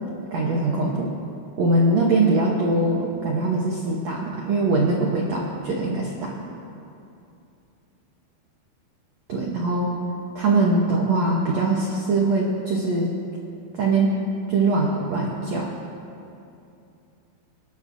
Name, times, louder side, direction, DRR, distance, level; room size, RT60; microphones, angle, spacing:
voice 1, 0.3-1.1 1.6-6.3 9.3-9.9 10.3-13.1 13.7-14.1 14.5-15.7, right 2 dB, 70° right, -2 dB, 1.6 m, -22 dB
27.5 x 11.5 x 2.7 m, 2.7 s
omnidirectional pair, 4.7 m